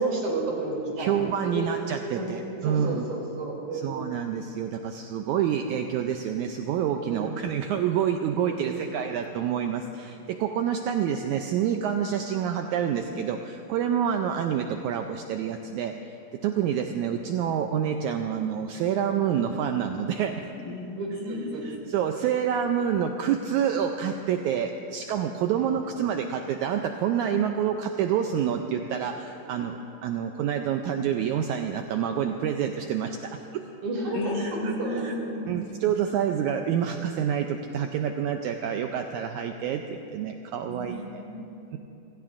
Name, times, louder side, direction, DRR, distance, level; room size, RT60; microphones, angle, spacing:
voice 1, 0.0-1.1 1.4-1.7 2.1-2.3 2.6-4.0 7.1-7.3 8.5-8.9 21.0-21.6 25.5-25.7 33.8-35.1, right 2 dB, 60° right, -2 dB, 4.2 m, -31 dB
voice 2, 1.0-3.0 3.7-16.1 16.4-20.4 21.6-33.6 34.4-35.1 35.5-41.2, right 8 dB, 80° right, 5 dB, 1.8 m, -28 dB
voice 3, 20.6-21.6 34.1-35.8 40.6-41.5, left 2 dB, 80° left, 2 dB, 3.0 m, -35 dB
28.5 x 17.0 x 2.5 m, 2.8 s
omnidirectional pair, 3.9 m